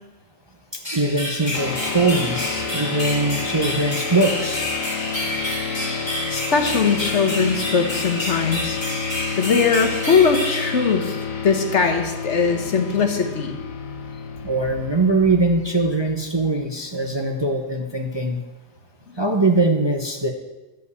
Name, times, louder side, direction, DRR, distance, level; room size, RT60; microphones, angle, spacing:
voice 1, 0.7-4.7 14.4-18.4 19.2-20.3, right 2 dB, 25° right, 2 dB, 0.8 m, -21 dB
sound 1, 0.8-11.5, left 1 dB, 20° left, 2.9 m, -29 dB
sound 2, 1.5-16.3, left 6 dB, 80° left, 1.5 m, -30 dB
voice 2, 6.3-8.8 9.4-11.2 11.4-13.6, left 5 dB, 60° left, 4 dB, 1.4 m, -20 dB
11.5 x 5.4 x 8.2 m, 1.1 s
omnidirectional pair, 1.4 m